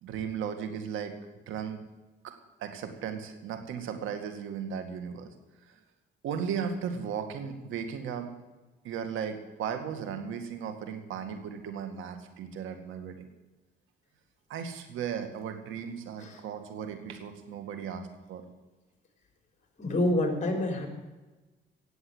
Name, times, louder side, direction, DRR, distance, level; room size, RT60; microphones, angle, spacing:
voice 1, 0.0-1.1 1.5-1.8 2.2-2.3 2.6-5.3 6.2-8.3 8.8-13.3 14.5-18.4, right 7 dB, 90° right, 7 dB, 2.1 m, -36 dB
voice 2, 19.8-20.9, left 1 dB, 35° left, 3 dB, 4.0 m, -27 dB
17.5 x 8.0 x 7.9 m, 1.2 s
cardioid pair, 90°, 20 cm